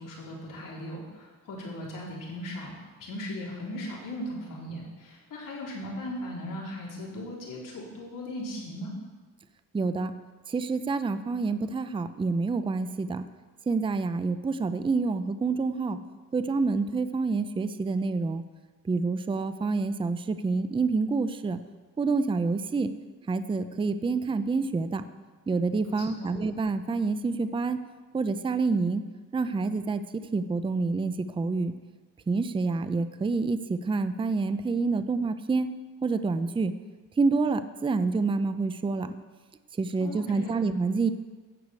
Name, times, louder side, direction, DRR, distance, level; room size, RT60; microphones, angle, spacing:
voice 1, 0.0-8.9 25.8-26.3 40.0-40.6, left 1 dB, 65° left, -3 dB, 3.7 m, -38 dB
voice 2, 9.7-10.1 10.5-13.3 13.7-16.0 16.3-18.4 18.8-21.6 22.0-22.9 23.3-25.0 25.5-27.8 28.1-29.0 29.3-31.7 32.3-35.7 36.0-36.7 37.2-39.1 39.8-41.1, right 4 dB, 15° right, 11 dB, 0.5 m, -27 dB
14.5 x 5.0 x 8.3 m, 1.4 s
cardioid pair, 125°, 34 cm